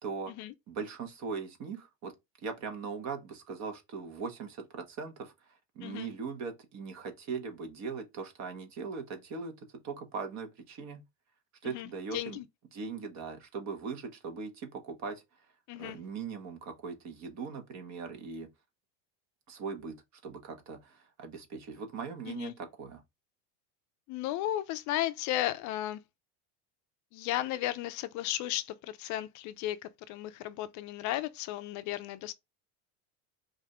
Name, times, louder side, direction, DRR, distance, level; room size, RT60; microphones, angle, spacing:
voice 1, 0.7-2.1 2.4-5.3 5.7-9.5 9.8-11.0 11.6-12.4 12.7-15.2 15.8-18.5 19.5-20.0 20.2-23.0, right 5 dB, 50° right, 1.4 m, -40 dB
voice 2, 11.6-12.5 15.7-16.0 22.3-22.5 24.1-26.0 27.1-32.3, left 14 dB, 55° left, 0.5 m, -35 dB
4.9 x 2.7 x 3.3 m
supercardioid pair, 125°, 36 cm